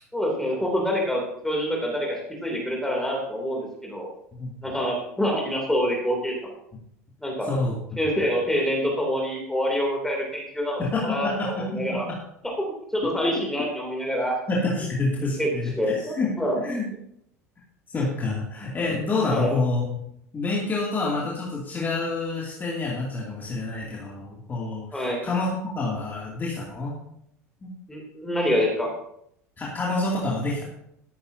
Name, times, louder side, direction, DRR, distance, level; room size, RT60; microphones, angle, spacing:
voice 1, 0.1-4.1 4.6-6.3 7.2-7.5 8.0-12.0 12.6-12.7 12.9-14.4 15.4-15.5 15.7-16.6 19.3-19.6 24.9-25.3 27.9-28.9, equal, 5° left, -1 dB, 3.0 m, -26 dB
voice 2, 10.8-11.8 13.2-13.4 14.5-16.9 17.9-25.5 25.7-27.1 27.6-27.7 29.6-30.6, left 3 dB, 25° left, -4 dB, 2.6 m, -28 dB
13.5 x 13.0 x 2.8 m, 0.73 s
figure-of-eight pair, 70°, 8 cm